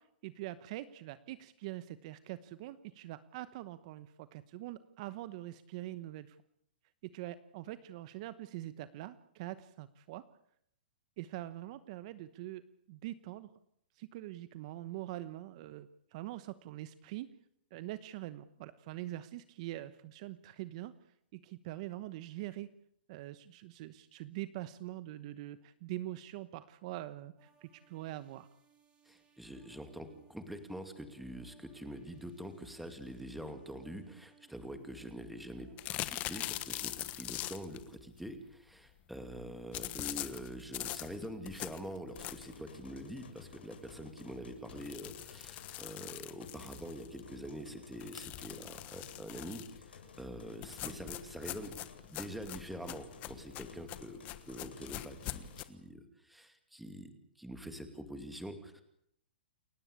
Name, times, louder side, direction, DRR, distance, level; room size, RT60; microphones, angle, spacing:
voice 1, 0.0-6.4 7.0-10.2 11.2-12.6 12.9-13.5 14.0-17.3 17.7-20.9 21.3-22.7 23.1-28.5 50.8-50.9, right 15 dB, 40° right, 14 dB, 1.1 m, -44 dB
sound 1, 27.4-37.3, right 7 dB, 20° right, 5.2 m, -66 dB
voice 2, 29.1-51.7 52.1-54.2 54.5-58.8, equal, ahead, 8 dB, 2.5 m, -45 dB
sound 2, 35.8-37.8 39.7-42.6 43.1-43.2 43.5-43.6 43.9-44.0 44.7-47.2 48.0-49.8 50.6-55.6, left 15 dB, 25° left, 1.3 m, -42 dB
sound 3, 42.1-55.6, left 6 dB, 90° left, 7.0 m, -55 dB
29.5 x 14.5 x 8.5 m, 0.72 s
hypercardioid pair, 155°, 5 cm